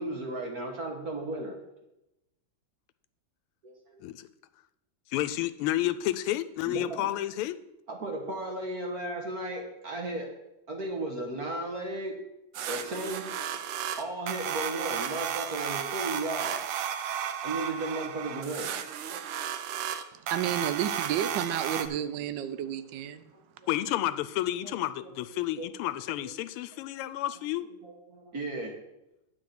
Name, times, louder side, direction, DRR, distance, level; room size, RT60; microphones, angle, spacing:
voice 1, 0.0-1.6 3.6-4.0 6.6-7.1 7.9-10.3 10.7-12.2 12.7-13.3 14.0-16.8 17.4-18.7 23.6-23.7 24.6-24.7 25.0-25.1 25.6-25.7 26.2-26.3 27.8-28.7, right 2 dB, 50° right, 1.6 m, -35 dB
voice 2, 5.1-7.6 23.7-27.7, left 14 dB, 85° left, 1.5 m, -30 dB
sound 1, 12.5-21.9, right 9 dB, 90° right, 1.5 m, -34 dB
voice 3, 20.2-23.2, right 10 dB, 75° right, 1.0 m, -31 dB
9.7 x 4.3 x 7.6 m
omnidirectional pair, 2.4 m